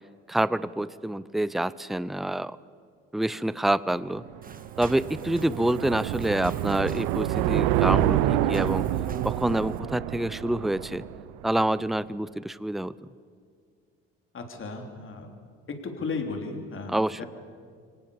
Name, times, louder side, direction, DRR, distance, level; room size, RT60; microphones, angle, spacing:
voice 1, 0.3-2.6 3.1-4.2 4.8-8.9 9.2-11.1 11.4-12.9 16.9-17.2, right 1 dB, ahead, 18 dB, 0.6 m, -27 dB
sound 1, 4.1-11.5, right 13 dB, 85° right, 0.8 m, -27 dB
sound 2, 4.4-9.8, right 4 dB, 30° right, 1.7 m, -46 dB
voice 2, 14.3-15.3 15.7-17.3, left 4 dB, 45° left, 4 dB, 3.5 m, -35 dB
24.5 x 18.5 x 7.1 m, 2.1 s
supercardioid pair, 70°, 29 cm